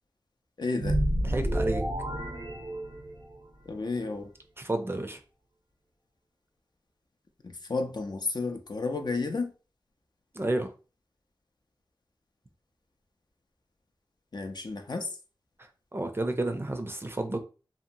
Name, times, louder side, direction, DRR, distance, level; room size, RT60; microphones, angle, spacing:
voice 1, 0.6-1.0 3.7-4.3 7.4-9.5 14.3-15.2, left 3 dB, 55° left, 0.4 m, -32 dB
sound 1, 0.8-3.4, right 1 dB, 90° right, 0.6 m, -29 dB
voice 2, 1.2-1.8 4.6-5.2 10.3-10.7 15.9-17.4, right 2 dB, 25° right, 0.4 m, -31 dB
2.8 x 2.1 x 2.6 m
wide cardioid pair, 50°, 8 cm